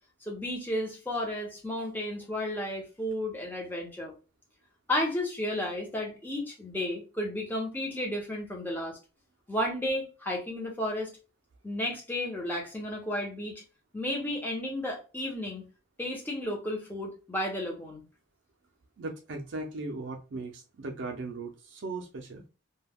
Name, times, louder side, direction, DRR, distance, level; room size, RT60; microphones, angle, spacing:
voice 1, 0.2-4.1 4.9-9.0 9.5-11.1 11.6-13.6 13.9-15.7 16.0-18.0, left 1 dB, 10° left, 0.7 m, -33 dB
voice 2, 19.0-22.4, right 3 dB, 65° right, 0.4 m, -38 dB
2.2 x 2.1 x 3.4 m
head